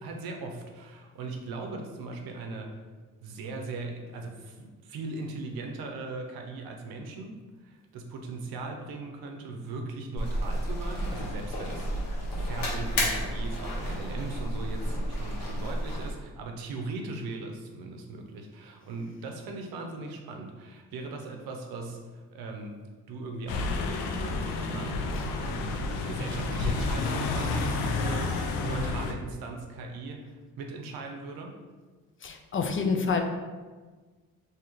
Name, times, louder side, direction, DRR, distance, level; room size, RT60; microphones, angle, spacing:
voice 1, 0.0-2.8 3.2-11.9 12.3-22.8 23.1-25.1 25.4-25.8 26.1-31.6, right 3 dB, 80° right, 3 dB, 0.7 m, -39 dB
sound 1, 10.2-16.1, equal, 70° left, 1.3 m, -31 dB
sound 2, 23.5-29.1, left 3 dB, 90° left, 0.5 m, -30 dB
voice 2, 32.2-33.2, left 5 dB, 35° left, 5 dB, 0.5 m, -27 dB
2.9 x 2.9 x 3.7 m, 1.3 s
supercardioid pair, 70°, 36 cm